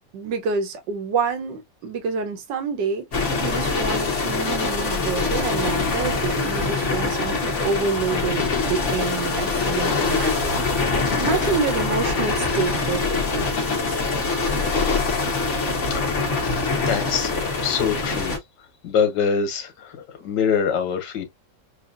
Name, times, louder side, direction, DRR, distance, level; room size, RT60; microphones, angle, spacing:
voice 1, 0.1-3.0 3.4-10.5 11.2-13.5 13.9-14.0, right 5 dB, 80° right, 1.7 m, -27 dB
sound 1, 3.1-18.4, left 4 dB, 45° left, 1.6 m, -24 dB
voice 2, 15.9-16.2 16.7-18.3 18.8-21.2, left 6 dB, 75° left, 1.8 m, -24 dB
6.1 x 2.5 x 2.5 m
omnidirectional pair, 1.9 m